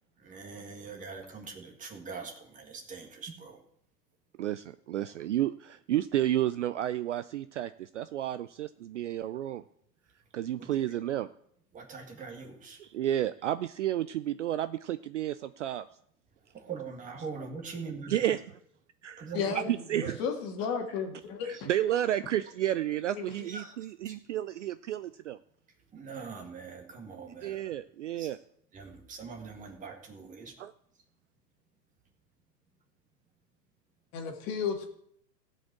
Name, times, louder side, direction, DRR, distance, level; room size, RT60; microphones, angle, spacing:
voice 1, 0.2-3.6 5.0-5.1 10.6-11.0 11.7-12.8 16.5-18.2 19.2-19.4 19.9-20.1 23.5-23.7 24.1-24.2 25.9-27.6 28.2-28.4 28.7-30.5, right 5 dB, 15° right, 3 dB, 1.8 m, -42 dB
voice 2, 4.4-9.6 10.3-11.3 12.8-15.9 18.1-18.4 19.0-20.2 21.4-25.4 27.4-28.4 30.6-30.7, right 12 dB, 50° right, 13 dB, 0.5 m, -31 dB
voice 3, 19.3-19.7 20.2-21.7 34.1-34.9, left 6 dB, 30° left, 4 dB, 2.1 m, -33 dB
15.5 x 5.5 x 8.5 m, 0.70 s
hypercardioid pair, 135°, 50 cm